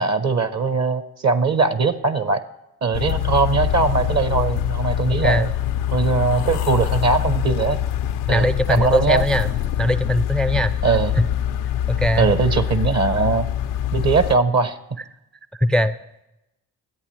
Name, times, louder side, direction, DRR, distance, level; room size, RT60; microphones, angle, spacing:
voice 1, 0.0-2.4 2.8-5.5 5.9-7.8 8.3-9.2 10.8-11.1 12.2-13.5 13.9-14.8, right 4 dB, 40° right, 12 dB, 0.9 m, -20 dB
sound 1, 2.9-14.4, left 10 dB, 85° left, 0.6 m, -24 dB
voice 2, 5.1-5.5 8.3-9.5 9.8-10.7 11.2-11.3 11.9-12.3 15.5-15.9, equal, ahead, 13 dB, 0.4 m, -20 dB
24.5 x 8.3 x 3.2 m, 0.90 s
supercardioid pair, 50°, 42 cm